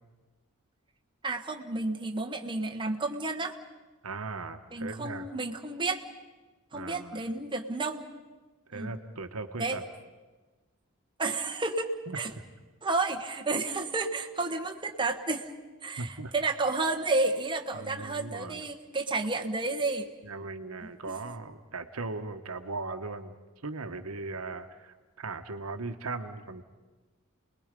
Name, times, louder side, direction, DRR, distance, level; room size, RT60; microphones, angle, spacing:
voice 1, 1.2-3.6 4.7-6.0 6.7-8.1 8.7-9.0 9.6-9.8 11.2-12.3 12.8-15.5 15.8-20.1 20.8-21.2, right 3 dB, 25° right, 2 dB, 1.3 m, -31 dB
voice 2, 4.0-5.3 6.7-7.2 8.7-9.8 12.1-12.2 16.0-16.3 17.7-18.6 20.2-23.3 23.6-26.6, right 3 dB, 75° right, 7 dB, 1.3 m, -38 dB
29.5 x 20.5 x 5.3 m, 1.3 s
head